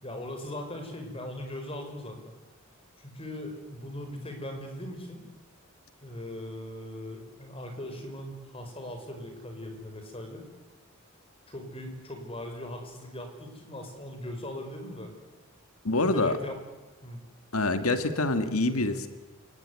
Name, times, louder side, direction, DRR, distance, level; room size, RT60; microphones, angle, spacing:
voice 1, 0.0-2.4 3.0-5.2 6.0-10.4 11.5-15.1 15.9-16.6 17.0-17.2, left 1 dB, 25° left, 5 dB, 5.0 m, -39 dB
voice 2, 15.8-16.3 17.5-19.1, left 2 dB, 85° left, 10 dB, 1.8 m, -26 dB
28.5 x 18.5 x 9.7 m, 1.2 s
head